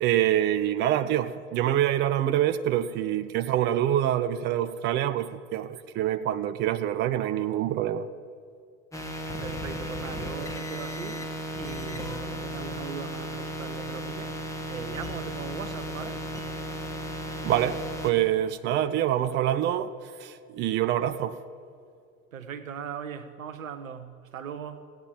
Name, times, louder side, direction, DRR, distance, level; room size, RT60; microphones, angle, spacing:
voice 1, 0.0-8.1 17.4-21.4, right 11 dB, 25° right, 0.5 m, -26 dB
sound 1, 8.9-18.1, equal, 5° left, 1.6 m, -35 dB
voice 2, 9.4-14.4 14.7-16.3 22.3-24.9, right 7 dB, 70° right, 1.0 m, -39 dB
16.5 x 8.9 x 7.5 m
figure-of-eight pair, 75°, 41 cm